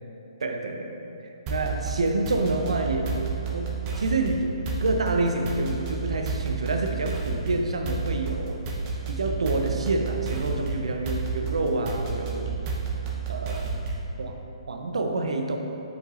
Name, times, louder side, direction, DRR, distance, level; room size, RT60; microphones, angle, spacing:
voice 1, 0.4-1.1 1.5-3.3 3.5-4.5 4.8-8.6 9.1-12.5 13.3-13.7 14.2-14.4 14.7-15.6, right 2 dB, 75° right, 4 dB, 0.6 m, -28 dB
sound 1, 1.5-14.1, right 4 dB, 25° right, 0.7 m, -31 dB
7.7 x 4.9 x 2.5 m, 2.9 s
hypercardioid pair, 145°, 3 cm